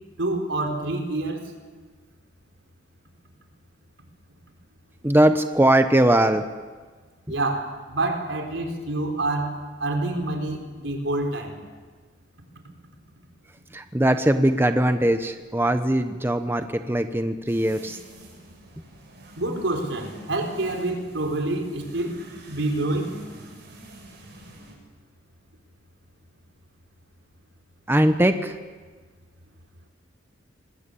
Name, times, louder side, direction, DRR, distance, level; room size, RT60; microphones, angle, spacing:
voice 1, 0.2-1.5 7.3-9.5 9.8-11.6 19.4-22.2 22.5-23.1, right 2 dB, 80° right, 3 dB, 4.4 m, -27 dB
voice 2, 5.0-6.5 13.7-18.0 27.9-28.6, right 1 dB, 10° right, 8 dB, 0.9 m, -20 dB
sound 1, 17.5-24.7, right 2 dB, 60° right, 7.2 m, -47 dB
25.5 x 20.5 x 8.6 m, 1.4 s
head